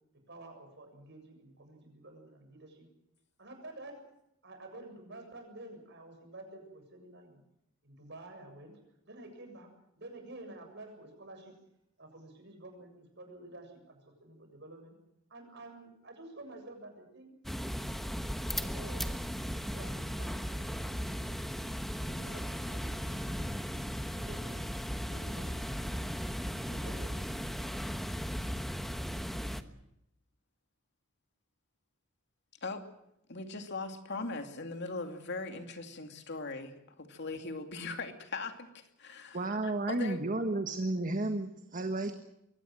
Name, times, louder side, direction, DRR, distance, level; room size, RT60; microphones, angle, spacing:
voice 1, 0.3-2.9 3.4-3.9 4.4-7.4 7.8-8.7 9.1-9.7 10.0-11.5 12.0-14.9 15.3-17.3 18.5-19.0 19.6-21.4 21.9-23.5 24.0-24.6 25.0-25.6 26.4-27.2, right 2 dB, 60° right, 5 dB, 7.4 m, -50 dB
sound 1, 17.4-29.6, equal, ahead, 1.1 m, -36 dB
voice 2, 33.3-40.2, left 3 dB, 60° left, 6 dB, 2.6 m, -40 dB
voice 3, 39.3-42.1, right 2 dB, 40° right, 7 dB, 1.5 m, -32 dB
23.5 x 18.0 x 7.8 m, 0.81 s
head